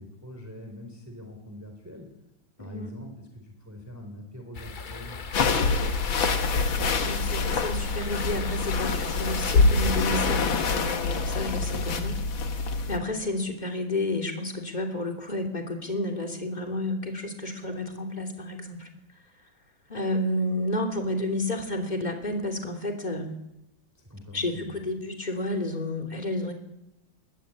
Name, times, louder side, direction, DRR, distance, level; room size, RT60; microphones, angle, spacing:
voice 1, 0.0-2.1 2.6-5.2 11.6-12.0 23.9-24.8, left 1 dB, 10° right, 3 dB, 3.7 m, -43 dB
voice 2, 2.6-2.9 7.0-12.2 12.6-18.9 19.9-23.3 24.3-26.5, left 1 dB, 20° left, 3 dB, 3.2 m, -31 dB
sound 1, 4.5-10.7, left 4 dB, 40° left, 0.7 m, -39 dB
sound 2, 5.3-13.0, left 4 dB, 80° left, 2.4 m, -25 dB
21.5 x 20.5 x 8.7 m, 0.89 s
omnidirectional pair, 2.1 m